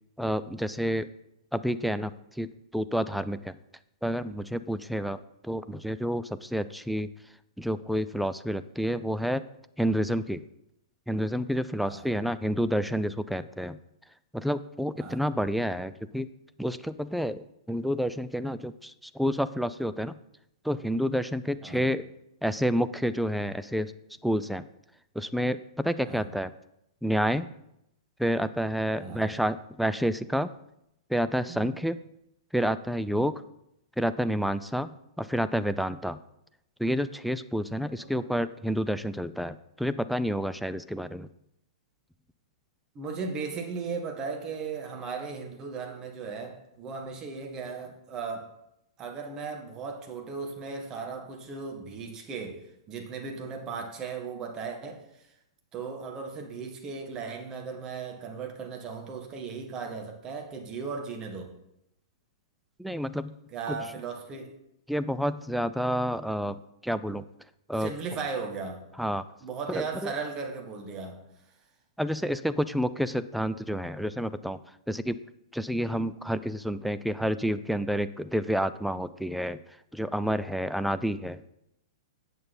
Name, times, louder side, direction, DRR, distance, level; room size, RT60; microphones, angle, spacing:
voice 1, 0.2-1.1 1.5-3.6 4.0-7.1 7.6-9.4 9.8-10.4 11.1-13.8 14.3-16.3 16.6-20.2 20.6-22.1 22.4-23.9 24.2-24.6 25.1-26.5 27.0-27.5 28.2-30.5 31.1-32.0 32.5-33.4 34.0-36.2 36.8-41.3 62.8-63.4 63.7-63.8 64.9-67.2 67.7-67.9 69.0-69.2 69.7-70.1 72.0-74.6 74.9-75.2 75.5-79.6 79.9-81.4, equal, ahead, 0.3 m, -29 dB
voice 2, 29.0-29.3 31.5-31.7 37.7-38.3 42.9-48.5 49.0-55.3 55.7-61.5 63.5-64.6 67.8-68.8 69.4-71.3, right 5 dB, 25° right, 1.5 m, -37 dB
8.7 x 6.7 x 4.3 m
figure-of-eight pair, 105°, 3 cm